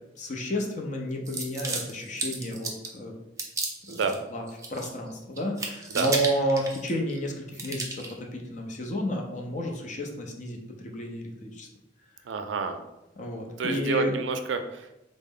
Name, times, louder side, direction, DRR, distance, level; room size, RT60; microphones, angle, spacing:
voice 1, 0.2-3.1 3.9-4.0 4.3-8.0 8.3-10.6 10.8-11.7 13.2-14.1, equal, 40° left, 1 dB, 0.6 m, -31 dB
sound 1, 1.2-3.0 3.4-4.2 4.5-5.1 5.4-7.2 7.5-8.1, right 3 dB, 15° right, 0.4 m, -34 dB
voice 2, 12.3-12.8 13.6-15.0, right 5 dB, 85° right, 7 dB, 0.4 m, -29 dB
3.8 x 2.0 x 3.7 m, 0.93 s
head